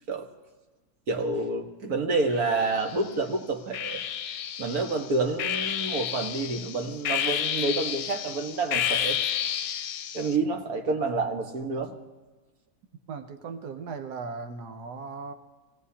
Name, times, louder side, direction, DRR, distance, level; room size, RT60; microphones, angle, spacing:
voice 1, 1.1-4.0 4.6-9.2 10.1-11.9, right 3 dB, 70° right, 4 dB, 1.8 m, -28 dB
sound 1, 2.4-3.1 3.7-10.4, left 9 dB, 70° left, 1.0 m, -31 dB
voice 2, 13.1-15.3, right 4 dB, 85° right, 7 dB, 1.4 m, -37 dB
24.0 x 17.5 x 2.8 m, 1.2 s
omnidirectional pair, 1.7 m